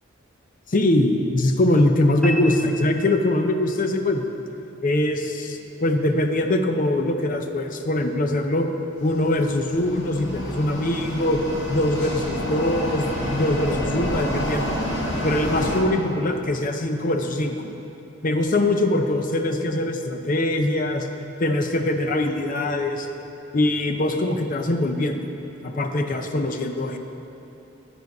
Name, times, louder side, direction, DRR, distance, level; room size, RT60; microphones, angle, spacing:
voice 1, 0.7-4.3 4.8-8.7 9.0-11.4 11.7-14.8 15.2-17.7 18.2-21.1 21.4-23.1 23.5-25.3 25.6-27.0, left 1 dB, 45° left, 5 dB, 0.6 m, -22 dB
sound 1, 2.2-3.8, left 1 dB, 5° left, 1.0 m, -34 dB
sound 2, 8.9-15.8, equal, 75° left, 1.9 m, -29 dB
9.4 x 6.3 x 5.3 m, 2.9 s
head